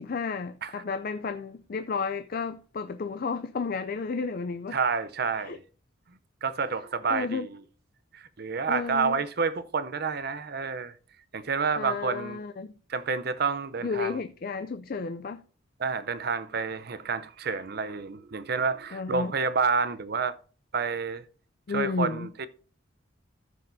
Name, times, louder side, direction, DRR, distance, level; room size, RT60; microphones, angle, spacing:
voice 1, 0.0-4.8 5.4-5.6 7.1-7.5 8.7-9.2 11.8-12.7 13.8-15.4 18.9-19.3 21.7-22.3, left 4 dB, 45° left, 0.4 m, -32 dB
voice 2, 4.7-5.6 6.4-7.6 8.1-10.9 11.3-12.4 12.9-14.2 15.8-20.3 20.7-21.3 21.7-22.5, right 5 dB, 50° right, 0.6 m, -29 dB
14.5 x 6.6 x 2.7 m
head